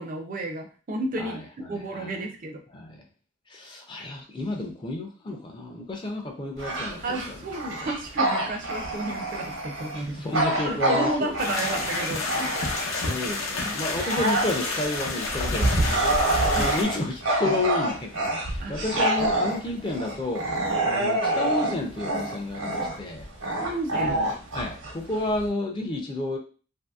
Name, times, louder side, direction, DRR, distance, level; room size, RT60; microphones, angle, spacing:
voice 1, 0.0-1.4 1.7-2.6 7.0-10.3 10.6-12.5 16.5-16.7 17.4-17.6 18.6-18.8 23.6-24.2, right 2 dB, 40° right, 4 dB, 0.4 m, -32 dB
voice 2, 1.2-2.2 2.7-3.0 3.5-7.4 10.1-11.5 13.1-20.4 20.8-23.2 23.9-26.4, left 2 dB, 25° left, 2 dB, 0.4 m, -31 dB
Bark / Growling, 6.6-13.1 13.6-25.5, right 1 dB, 90° right, 0.9 m, -27 dB
sound 1, 11.4-16.8, left 3 dB, 90° left, 0.8 m, -30 dB
2.8 x 2.6 x 2.3 m, 0.37 s
head